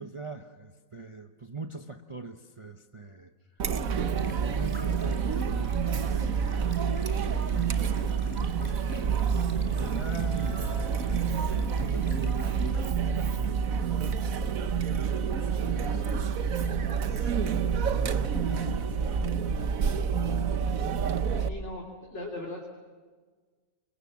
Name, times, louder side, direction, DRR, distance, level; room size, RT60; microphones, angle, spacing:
voice 1, 0.0-6.6 7.1-16.3 16.6-20.4, right 4 dB, 25° right, 5 dB, 1.0 m, -44 dB
Chatter, 3.6-21.5, right 6 dB, 85° right, 1.5 m, -28 dB
Stream, 4.1-12.9, equal, 10° right, 3.2 m, -51 dB
sound 1, 7.3-14.2, right 2 dB, 50° right, 7.4 m, -48 dB
voice 2, 21.4-22.7, left 1 dB, 55° left, -2 dB, 3.7 m, -39 dB
29.0 x 22.5 x 7.4 m, 1.4 s
omnidirectional pair, 1.4 m